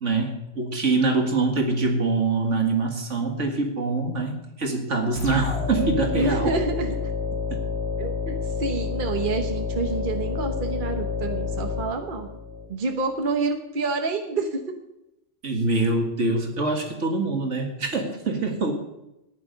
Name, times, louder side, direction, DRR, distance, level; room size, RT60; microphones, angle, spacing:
voice 1, 0.0-6.6 15.4-18.7, right 3 dB, 75° right, 3 dB, 2.2 m, -24 dB
sound 1, 5.2-12.7, left 5 dB, 55° left, 3.2 m, -29 dB
voice 2, 6.2-7.0 8.0-12.3 12.7-14.6, right 3 dB, 45° right, 4 dB, 1.3 m, -28 dB
14.5 x 10.0 x 5.2 m, 0.88 s
omnidirectional pair, 1.3 m